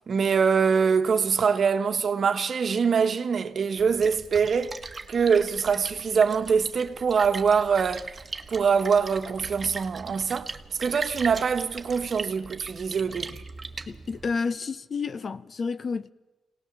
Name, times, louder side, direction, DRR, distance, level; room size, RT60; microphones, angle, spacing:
voice 1, 0.1-4.8 5.1-8.1 8.5-10.5 10.8-13.4, right 6 dB, 55° right, 1.3 m, -24 dB
Splash splatter, 3.8-14.4, right 4 dB, 30° right, 1.5 m, -40 dB
voice 2, 13.9-16.1, left 5 dB, 45° left, 0.7 m, -30 dB
24.5 x 18.5 x 7.4 m
cardioid pair, 105°, 0 cm